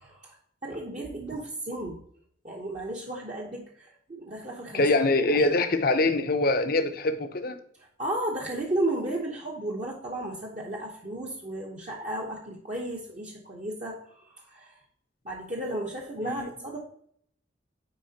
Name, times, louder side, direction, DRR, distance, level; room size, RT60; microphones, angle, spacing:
voice 1, 0.0-0.4 0.6-2.0 2.4-4.8 5.3-5.4 8.0-14.8 15.2-16.8, right 1 dB, 40° right, -3 dB, 0.9 m, -34 dB
voice 2, 4.7-7.6 16.2-16.5, left 2 dB, 50° left, 7 dB, 0.7 m, -24 dB
9.6 x 4.2 x 2.8 m, 0.66 s
head